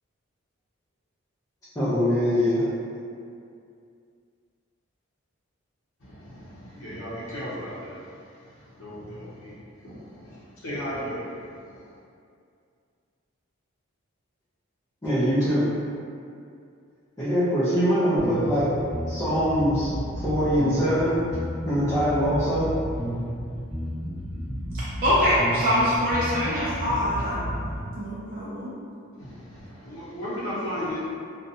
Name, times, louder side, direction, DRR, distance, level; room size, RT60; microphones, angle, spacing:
voice 1, 1.7-2.6 15.0-15.7 17.2-18.7 19.1-19.9 20.2-21.2 21.6-22.7, equal, 15° left, -14 dB, 0.5 m, -23 dB
voice 2, 6.0-9.6 9.8-11.9 29.2-31.0, equal, 70° left, -10 dB, 0.6 m, -36 dB
sound 1, 18.2-27.8, equal, 5° right, 0.9 m, -32 dB
voice 3, 24.7-27.4 28.0-28.7, equal, 40° right, -9 dB, 0.4 m, -24 dB
2.7 x 2.1 x 2.6 m, 2.4 s
head